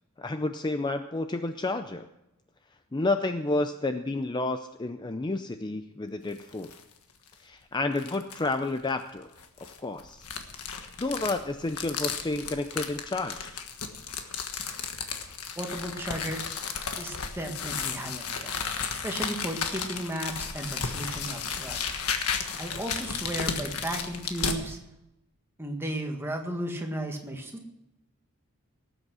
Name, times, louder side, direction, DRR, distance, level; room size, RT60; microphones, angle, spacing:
voice 1, 0.2-2.1 2.9-6.7 7.4-9.3 9.6-10.2 11.0-13.6, left 2 dB, 20° left, 8 dB, 0.5 m, -30 dB
sound 1, 6.3-6.8 7.3-7.4 8.0-8.5 9.4-24.6, left 6 dB, 80° left, 1.4 m, -34 dB
voice 2, 15.6-16.4 17.0-18.6 19.0-21.9 22.6-24.8 25.6-27.7, right 1 dB, 10° right, 3 dB, 1.6 m, -34 dB
18.5 x 8.1 x 6.2 m, 0.89 s
head